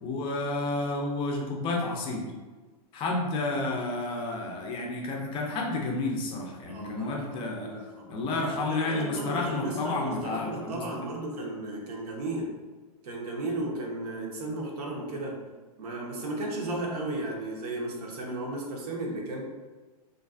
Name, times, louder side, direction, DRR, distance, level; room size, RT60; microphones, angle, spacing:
voice 1, 0.0-2.2 2.9-7.7 8.1-10.8, left 2 dB, 25° left, 0 dB, 0.4 m, -31 dB
voice 2, 6.7-8.1 8.6-12.5 13.0-15.4 15.8-19.4, right 2 dB, 75° right, -1 dB, 0.7 m, -34 dB
2.5 x 2.3 x 2.3 m, 1.3 s
hypercardioid pair, 130°, 20 cm